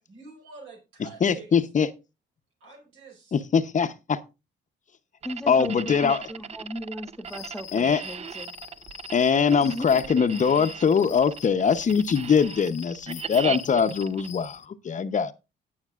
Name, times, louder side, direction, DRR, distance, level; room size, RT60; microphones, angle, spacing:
voice 1, 0.1-1.5 2.6-3.4, right 3 dB, 85° right, 4.6 m, -47 dB
voice 2, 1.2-1.9 3.3-4.2 5.5-6.2 7.7-8.0 9.1-15.3, left 6 dB, 40° left, 0.7 m, -22 dB
voice 3, 5.2-8.5 9.5-10.0, equal, 5° left, 0.7 m, -37 dB
sound 1, 5.2-14.3, right 7 dB, 35° right, 0.4 m, -38 dB
sound 2, 7.2-14.7, left 11 dB, 70° left, 1.0 m, -45 dB
18.0 x 6.6 x 2.4 m
cardioid pair, 90°, 20 cm